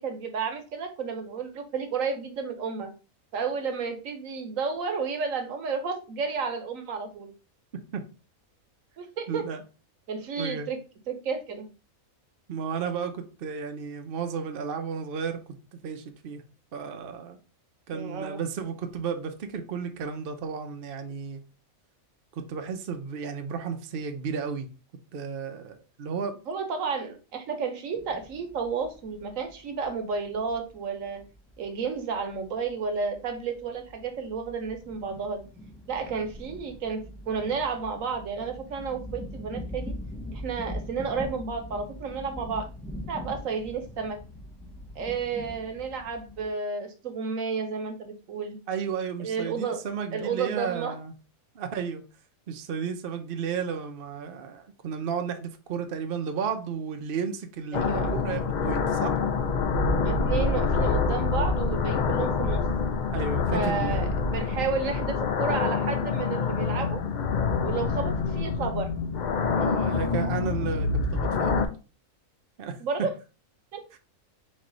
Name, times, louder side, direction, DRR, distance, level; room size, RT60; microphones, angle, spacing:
voice 1, 0.0-2.9 3.3-7.3 9.0-9.5 10.1-10.8 11.1-11.7 17.9-18.4 26.5-31.2 31.6-35.4 35.9-39.9 40.3-42.7 43.1-44.2 44.9-48.6 49.2-49.8 50.1-50.9 57.7-58.1 60.0-62.6 63.5-67.0 67.6-68.9 72.8-73.1 73.7-73.8, right 5 dB, 70° right, 1.2 m, -31 dB
voice 2, 9.3-9.6 10.4-10.7 12.5-15.4 15.7-16.4 16.7-17.4 17.9-21.4 22.3-24.7 25.1-26.3 48.7-51.1 51.5-52.0 52.5-59.2 63.1-64.5 69.5-71.7 72.6-72.8, right 6 dB, 55° right, 0.7 m, -33 dB
sound 1, 27.9-46.5, left 1 dB, ahead, 0.4 m, -42 dB
sound 2, 57.7-71.7, left 4 dB, 70° left, 0.4 m, -26 dB
4.4 x 3.2 x 3.8 m
omnidirectional pair, 1.4 m